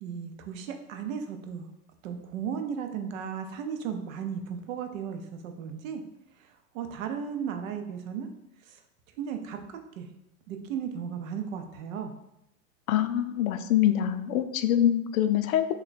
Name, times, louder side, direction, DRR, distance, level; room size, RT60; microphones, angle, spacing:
voice 1, 0.0-1.7 2.0-6.0 6.7-8.3 8.7-8.8 9.2-10.1 10.5-12.1, right 7 dB, 60° right, 5 dB, 0.7 m, -35 dB
voice 2, 12.9-15.7, left 11 dB, 65° left, 9 dB, 0.5 m, -25 dB
3.1 x 2.3 x 3.9 m, 0.82 s
hypercardioid pair, 130°, 46 cm